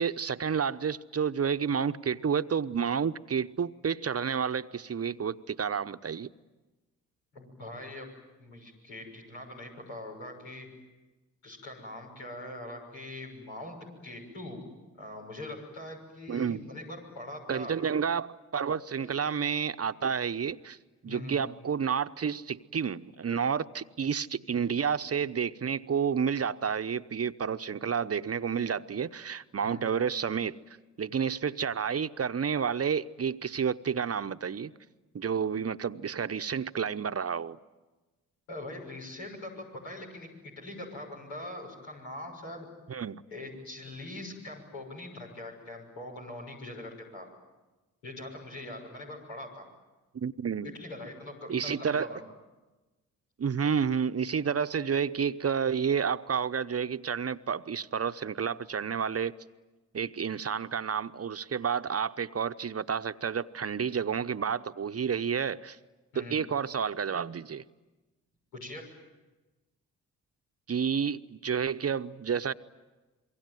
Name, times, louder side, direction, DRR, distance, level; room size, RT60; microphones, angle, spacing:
voice 1, 0.0-6.3 16.3-16.6 17.5-20.8 21.0-30.6 31.0-34.7 35.1-37.6 42.9-43.2 50.1-50.7 51.5-52.1 53.4-59.3 59.9-65.8 66.1-67.6 70.7-72.5, right 7 dB, 35° right, 0.9 m, -30 dB
voice 2, 7.3-8.1 8.4-10.7 11.4-14.6 14.9-17.7 19.0-19.1 21.0-21.4 29.6-29.8 38.5-42.7 43.3-47.3 48.0-49.7 50.6-52.2 66.1-66.4 68.5-68.8, left 1 dB, 90° left, 6.5 m, -42 dB
27.0 x 23.0 x 9.3 m
hypercardioid pair, 45°, 40 cm